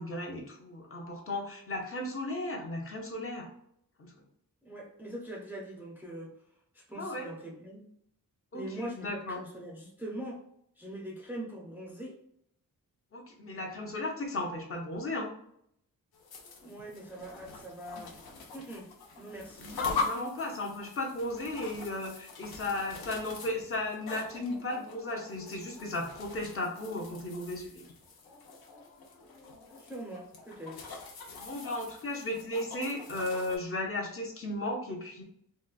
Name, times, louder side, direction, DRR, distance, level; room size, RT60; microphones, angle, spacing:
voice 1, 0.0-3.5 4.0-4.1 7.0-7.3 8.5-9.4 13.1-15.3 19.6-27.8 31.3-35.2, left 2 dB, 40° left, 1 dB, 0.6 m, -35 dB
voice 2, 4.6-6.3 6.7-7.9 8.5-10.5 10.8-12.2 16.6-18.2 18.5-18.9 19.2-19.8 29.8-30.9, right 1 dB, 5° right, -1 dB, 0.4 m, -42 dB
sound 1, 16.1-33.6, left 4 dB, 85° left, 0.8 m, -43 dB
3.8 x 2.2 x 2.3 m, 0.71 s
wide cardioid pair, 145°, 36 cm